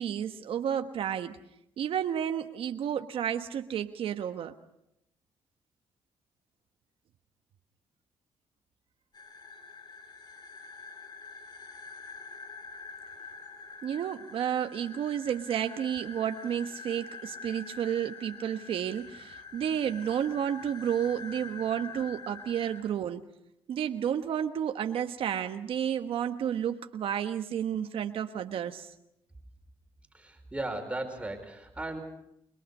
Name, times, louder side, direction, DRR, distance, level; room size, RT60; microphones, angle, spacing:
voice 1, 0.0-1.4 1.8-4.5 13.8-23.2 23.7-28.9, right 9 dB, 75° right, 7 dB, 1.2 m, -31 dB
sound 1, 9.1-22.8, left 4 dB, 50° left, 3.7 m, -46 dB
voice 2, 30.1-32.0, right 2 dB, 15° right, 4 dB, 4.8 m, -36 dB
28.5 x 22.5 x 5.5 m, 0.79 s
cardioid pair, 95°, 10 cm